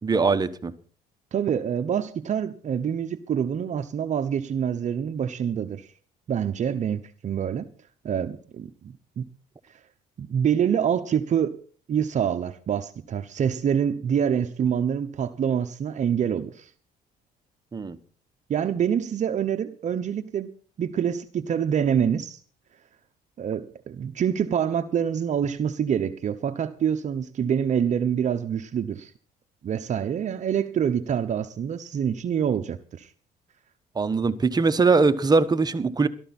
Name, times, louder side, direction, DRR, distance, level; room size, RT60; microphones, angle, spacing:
voice 1, 0.0-0.7 17.7-18.0 33.9-36.1, right 4 dB, 25° right, 1.2 m, -21 dB
voice 2, 1.3-5.9 6.3-7.7 8.0-9.3 10.2-11.6 11.9-16.7 18.5-22.4 23.4-29.1 29.6-33.1, right 8 dB, 45° right, 1.0 m, -26 dB
18.5 x 13.0 x 4.3 m
cardioid pair, 110°, 17 cm